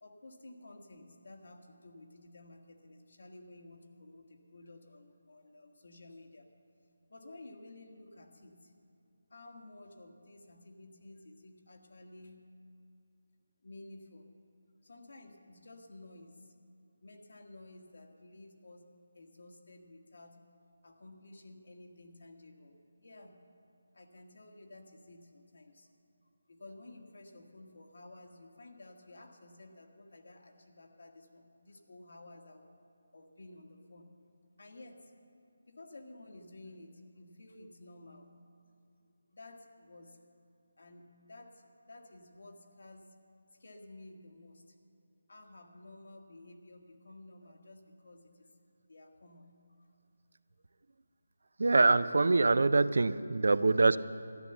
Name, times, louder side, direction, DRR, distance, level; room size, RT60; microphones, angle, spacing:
voice 1, 0.0-6.5 7.1-8.7 9.3-12.4 13.6-14.3 14.8-16.5 17.0-18.9 19.1-20.4 20.8-23.4 23.9-25.9 26.5-32.6 33.1-34.1 34.6-35.1 35.7-38.3 39.3-40.2 40.8-43.1 43.5-44.8 45.3-48.5 48.9-49.5 49.8-49.9, left 2 dB, 70° left, 3 dB, 1.7 m, -53 dB
voice 2, 51.6-54.0, right 3 dB, 70° right, 15 dB, 0.4 m, -24 dB
13.5 x 10.0 x 6.9 m, 2.6 s
figure-of-eight pair, 170°, 0 cm